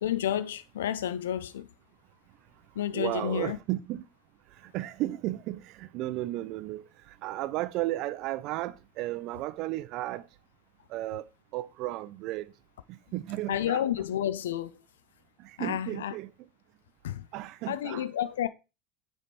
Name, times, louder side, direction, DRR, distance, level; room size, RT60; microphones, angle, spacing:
voice 1, 0.0-1.7 2.8-3.6 13.5-14.7 15.6-16.1 17.0-17.3 17.7-18.5, left 11 dB, 75° left, 0.4 m, -30 dB
voice 2, 2.9-4.0 4.7-6.8 7.2-10.2 10.9-11.2 11.5-12.5 12.9-13.8 15.4-16.3 17.3-18.1, right 16 dB, 55° right, 0.5 m, -34 dB
8.7 x 3.4 x 4.2 m
hypercardioid pair, 75°, 0 cm